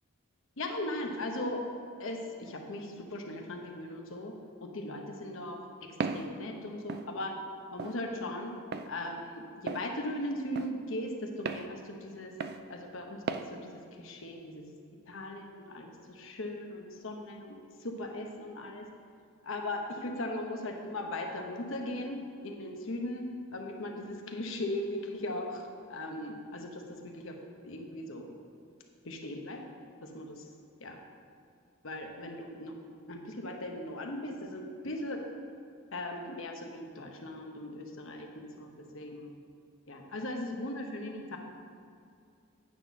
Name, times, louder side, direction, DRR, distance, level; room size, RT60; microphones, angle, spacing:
voice 1, 0.6-1.6 2.0-4.3 4.6-5.6 6.0-7.4 7.7-8.5 8.9-12.3 12.7-13.2 13.5-14.6 15.1-18.9 19.4-27.3 27.6-28.3 29.0-29.6 30.0-30.5 30.8-31.0 31.8-32.7 33.1-35.3 35.9-39.4 39.9-41.4, left 1 dB, 65° left, 2 dB, 0.9 m, -38 dB
Walk footsteps, 6.0-6.3 6.9-7.1 7.8-8.0 8.7-8.9 9.7-9.9 10.6-10.7 11.5-11.7 12.4-12.6 13.3-13.5, right 4 dB, 45° right, 0.3 m, -34 dB
8.9 x 4.1 x 5.9 m, 2.3 s
head